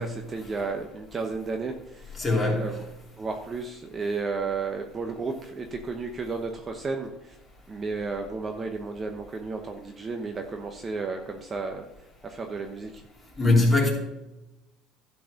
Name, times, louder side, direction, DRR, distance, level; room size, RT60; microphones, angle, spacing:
voice 1, 0.0-2.2 2.5-2.8 3.2-7.4 7.7-11.9 12.2-13.0, right 4 dB, 30° right, 1.0 m, -33 dB
voice 2, 2.1-2.8 13.4-13.9, left 2 dB, 15° left, 3.4 m, -22 dB
12.0 x 4.7 x 6.5 m
supercardioid pair, 105°, 0 cm